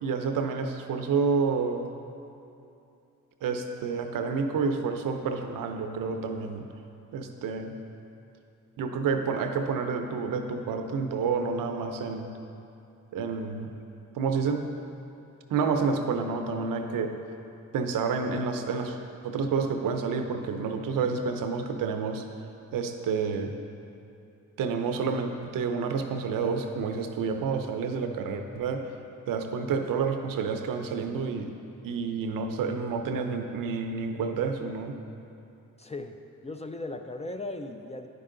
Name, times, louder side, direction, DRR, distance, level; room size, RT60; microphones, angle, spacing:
voice 1, 0.0-1.9 3.4-6.7 7.1-7.7 8.8-12.3 13.1-13.7 14.1-14.7 15.5-17.1 17.7-19.0 19.2-22.2 22.7-23.5 24.6-28.9 29.3-31.5 31.8-35.0, right 5 dB, 80° right, 6 dB, 0.7 m, -29 dB
voice 2, 35.8-38.1, left 2 dB, 20° left, 6 dB, 0.5 m, -37 dB
9.8 x 5.4 x 3.8 m, 2.7 s
cardioid pair, 70°, 33 cm